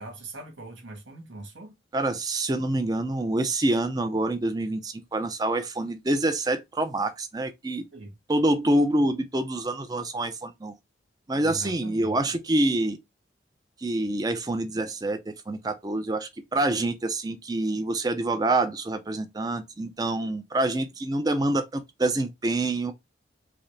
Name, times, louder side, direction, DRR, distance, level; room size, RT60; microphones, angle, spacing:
voice 1, 0.0-1.7 7.9-8.2 11.3-12.2, right 2 dB, 85° right, 1.6 m, -41 dB
voice 2, 1.9-7.9 8.3-10.7 11.3-13.0 13.8-22.9, right 2 dB, 20° right, 0.4 m, -26 dB
4.8 x 2.0 x 3.2 m
head